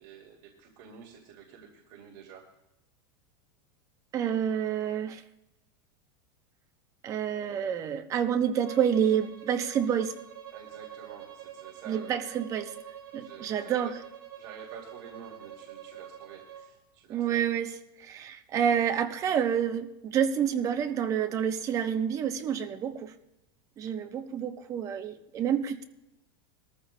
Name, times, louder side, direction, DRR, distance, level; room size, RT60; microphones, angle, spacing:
voice 1, 0.0-2.5 10.5-12.1 13.2-13.9 14.4-17.2, right 7 dB, 50° right, -1 dB, 2.4 m, -49 dB
voice 2, 4.1-5.2 7.0-10.1 11.9-12.8 13.1-14.0 17.1-23.1 23.8-25.8, right 8 dB, 25° right, 6 dB, 0.8 m, -28 dB
Bowed string instrument, 8.6-16.7, right 10 dB, 70° right, 3.4 m, -46 dB
22.0 x 14.0 x 2.2 m, 0.92 s
supercardioid pair, 160°, 13 cm